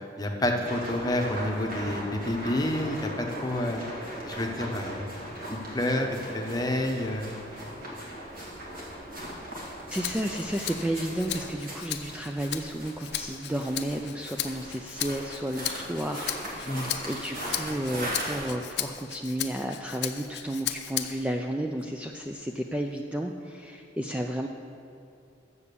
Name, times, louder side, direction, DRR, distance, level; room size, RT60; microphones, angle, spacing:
voice 1, 0.0-3.8 4.2-5.1 5.5-6.1 6.3-7.4 16.6-16.8, left 1 dB, 20° left, 2 dB, 0.8 m, -29 dB
sound 1, 0.6-18.5, equal, 50° right, 2.1 m, -39 dB
Rattle (instrument), 9.9-21.4 21.8-23.0, left 11 dB, 60° left, 0.5 m, -37 dB
voice 2, 9.9-24.5, right 1 dB, 5° right, 3 dB, 0.3 m, -32 dB
8.4 x 7.1 x 6.8 m, 2.6 s
head